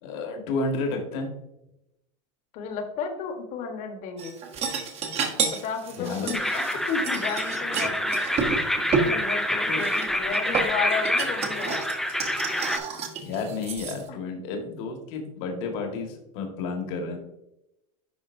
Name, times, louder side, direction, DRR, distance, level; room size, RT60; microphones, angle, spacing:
voice 1, 0.0-1.3 6.0-6.4 9.5-9.8 13.2-17.2, left 3 dB, 65° left, 2 dB, 1.7 m, -31 dB
voice 2, 2.5-4.4 5.5-8.2 9.0-11.9 14.1-14.2, left 6 dB, 45° left, 5 dB, 1.3 m, -33 dB
sound 1, 4.2-9.1 9.8-14.0, right 5 dB, 40° right, 1.2 m, -30 dB
sound 2, 6.3-12.8, left 1 dB, ahead, 0.5 m, -27 dB
11.0 x 4.0 x 2.6 m, 0.86 s
supercardioid pair, 140°, 17 cm